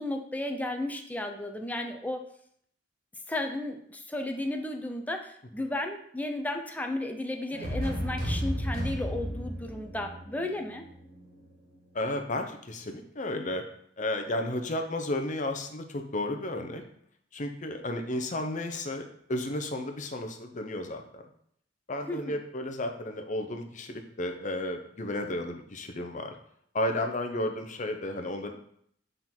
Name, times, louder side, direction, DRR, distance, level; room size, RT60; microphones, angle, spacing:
voice 1, 0.0-2.2 3.3-10.8 22.1-22.4, left 1 dB, 10° left, 4 dB, 0.7 m, -34 dB
sound 1, 7.5-11.4, equal, 50° right, 2.0 m, -33 dB
voice 2, 11.9-13.6 14.0-16.8 17.3-21.2 21.9-26.3 26.7-28.5, left 1 dB, 40° left, 5 dB, 0.8 m, -33 dB
8.1 x 3.9 x 4.4 m, 0.66 s
head